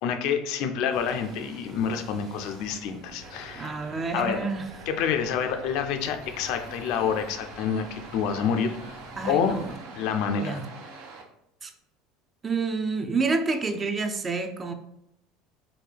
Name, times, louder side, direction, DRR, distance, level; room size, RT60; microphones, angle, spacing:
voice 1, 0.0-3.7 4.1-4.4 4.9-9.0 9.2-9.7 10.0-10.6, left 7 dB, 65° left, 6 dB, 0.4 m, -28 dB
Bus, 0.9-9.8, equal, 40° right, 0.9 m, -48 dB
sound 1, 3.2-5.8 6.2-11.2, right 4 dB, 80° right, 0.6 m, -45 dB
voice 2, 3.5-4.7 9.2-9.8 10.4-10.6 11.6-11.7 12.4-14.7, right 4 dB, 25° right, 7 dB, 0.4 m, -28 dB
3.7 x 2.2 x 3.3 m, 0.79 s
supercardioid pair, 120°, 0 cm